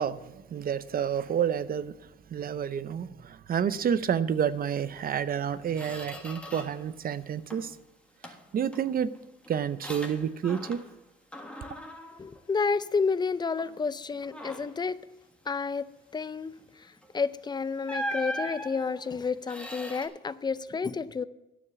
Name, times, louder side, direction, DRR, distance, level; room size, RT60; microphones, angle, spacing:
voice 1, 0.0-2.0 2.3-7.7 8.5-9.1 9.5-10.8, right 8 dB, 50° right, 0.6 m, -29 dB
Squeak, 5.0-5.1 5.5-6.9 7.2-7.8 8.2-11.0 11.3-13.2 13.6-13.8 14.2-14.9 17.0-17.2 17.9-20.1, equal, 5° left, 1.5 m, -40 dB
voice 2, 12.2-15.0 15.5-15.8 16.1-16.5 17.1-21.2, left 5 dB, 20° left, 0.4 m, -30 dB
9.9 x 7.2 x 6.9 m
cardioid pair, 90°, 20 cm